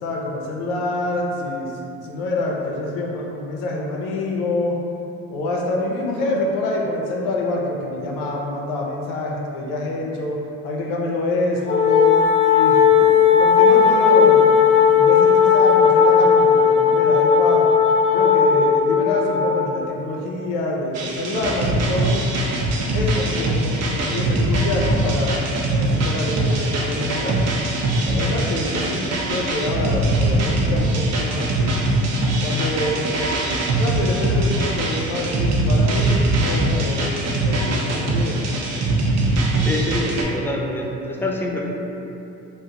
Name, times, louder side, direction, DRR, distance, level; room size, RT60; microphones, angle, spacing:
voice 1, 0.0-4.8 5.3-12.8 13.4-17.7 18.1-22.2 22.9-25.4 25.7-27.4 28.0-29.0 29.3-31.8 32.4-33.2 33.6-38.6, left 2 dB, 85° left, -1 dB, 0.5 m, -26 dB
Wind instrument woodwind instrument, 11.7-19.7, left 6 dB, 45° left, 0.7 m, -15 dB
sound 1, 20.9-40.2, right 1 dB, 55° right, 0.6 m, -22 dB
voice 2, 39.6-41.7, equal, 5° left, -1 dB, 0.3 m, -26 dB
2.4 x 2.0 x 3.9 m, 2.8 s
supercardioid pair, 85°, 31 cm